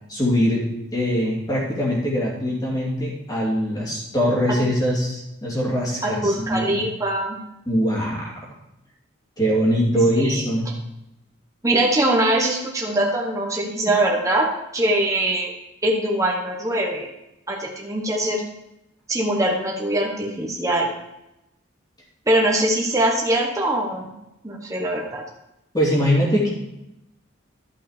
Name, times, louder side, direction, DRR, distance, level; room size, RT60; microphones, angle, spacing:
voice 1, 0.1-0.6 0.9-6.8 7.6-8.5 9.4-10.7 25.7-26.5, equal, 20° left, -4 dB, 2.6 m, -22 dB
voice 2, 6.0-7.4 10.1-10.4 11.6-15.5 15.8-17.1 17.5-18.4 19.1-20.9 22.3-24.1 24.4-25.2, right 1 dB, 15° right, -1 dB, 1.0 m, -22 dB
11.5 x 5.6 x 5.0 m, 0.88 s
head